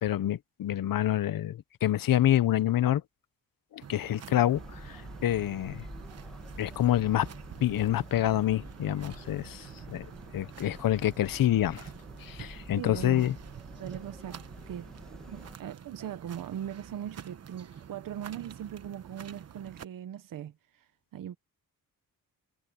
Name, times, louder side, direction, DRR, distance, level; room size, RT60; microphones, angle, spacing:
voice 1, 0.0-3.0 3.7-5.0 5.2-5.8 6.6-7.3 7.6-10.1 10.3-11.9 12.2-13.3, left 12 dB, 75° left, 0.8 m, -27 dB
sound 1, 3.8-19.8, right 8 dB, 45° right, 1.1 m, -47 dB
sound 2, 4.5-15.6, equal, ahead, 1.7 m, -48 dB
voice 2, 12.8-13.2 13.8-14.9 15.3-21.4, right 10 dB, 70° right, 0.8 m, -40 dB
wide cardioid pair, 175°, 34 cm